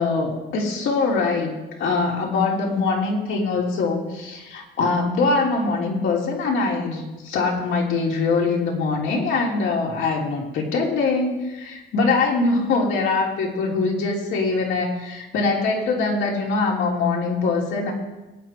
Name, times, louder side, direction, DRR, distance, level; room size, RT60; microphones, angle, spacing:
voice 1, 0.0-17.9, left 3 dB, 80° left, -1 dB, 3.5 m, -23 dB
22.0 x 9.6 x 4.6 m, 1.1 s
cardioid pair, 90°, 20 cm